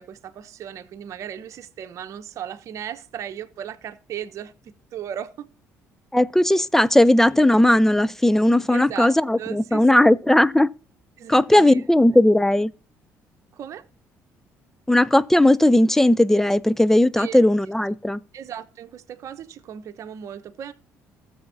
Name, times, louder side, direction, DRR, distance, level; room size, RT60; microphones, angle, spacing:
voice 1, 0.0-4.5 4.9-5.5 8.7-10.1 11.2-11.8 13.5-13.8 17.2-17.4 18.3-20.7, right 9 dB, 60° right, 0.9 m, -36 dB
voice 2, 6.1-10.7 11.3-12.7 14.9-18.2, left 1 dB, 5° left, 0.4 m, -17 dB
15.5 x 7.1 x 2.6 m
supercardioid pair, 75°, 6 cm